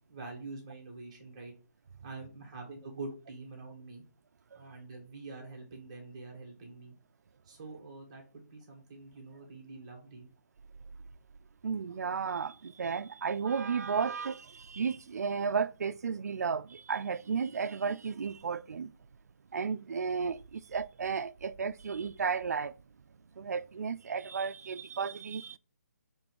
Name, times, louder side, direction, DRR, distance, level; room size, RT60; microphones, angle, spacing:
voice 1, 0.1-1.5 2.0-4.0 4.5-7.0 7.4-10.3, right 3 dB, 20° right, 1.4 m, -45 dB
voice 2, 11.6-18.9 19.5-22.7 23.4-25.6, right 6 dB, 60° right, 0.4 m, -33 dB
6.6 x 3.1 x 4.6 m
hypercardioid pair, 175°, 10 cm